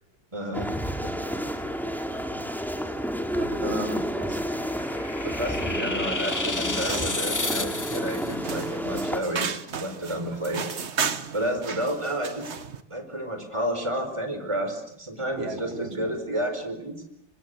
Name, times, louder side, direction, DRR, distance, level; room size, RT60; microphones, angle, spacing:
voice 1, 0.3-0.7 1.0-1.1 3.6-3.9 5.2-9.5 9.8-10.7 11.3-12.5 12.9-17.0, equal, 15° right, 6 dB, 4.6 m, -31 dB
sound 1, 0.5-9.2, equal, ahead, 2.6 m, -30 dB
voice 2, 1.1-2.5 3.3-4.6 5.9-6.0 10.2-10.4 15.4-16.2, right 2 dB, 80° right, 5 dB, 4.3 m, -40 dB
sound 2, 4.2-8.3, left 2 dB, 25° left, 0.4 m, -32 dB
sound 3, 6.7-12.8, right 6 dB, 40° right, 1.3 m, -34 dB
26.5 x 24.5 x 8.0 m, 0.76 s
omnidirectional pair, 2.1 m